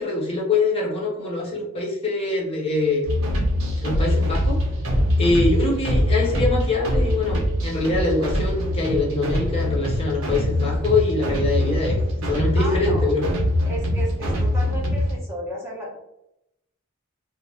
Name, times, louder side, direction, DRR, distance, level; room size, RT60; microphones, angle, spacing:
voice 1, 0.0-3.0 3.8-4.6 5.2-13.3, left 3 dB, 30° left, -3 dB, 0.7 m, -24 dB
sound 1, 3.0-15.2, left 1 dB, 90° right, 0.9 m, -23 dB
voice 2, 12.6-13.1 13.7-16.0, right 1 dB, 10° right, -4 dB, 0.7 m, -33 dB
2.5 x 2.2 x 3.3 m, 0.83 s
head